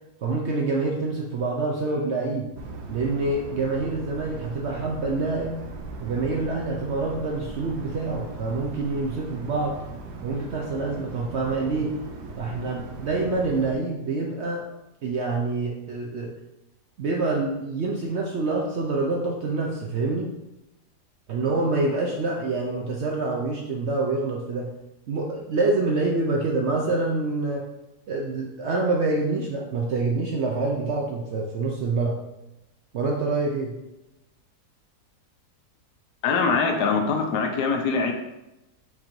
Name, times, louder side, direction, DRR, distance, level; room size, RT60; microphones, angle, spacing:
voice 1, 0.2-2.5 2.9-5.5 6.0-9.8 10.2-11.9 12.4-14.6 15.0-16.3 17.0-20.3 21.3-24.7 25.1-27.7 28.1-32.2 32.9-33.7, right 3 dB, 65° right, -1 dB, 0.7 m, -26 dB
sound 1, 2.6-13.7, right 3 dB, 80° right, 1.3 m, -39 dB
voice 2, 36.2-38.1, left 4 dB, 80° left, 3 dB, 1.2 m, -23 dB
4.5 x 2.6 x 4.4 m, 0.92 s
omnidirectional pair, 1.7 m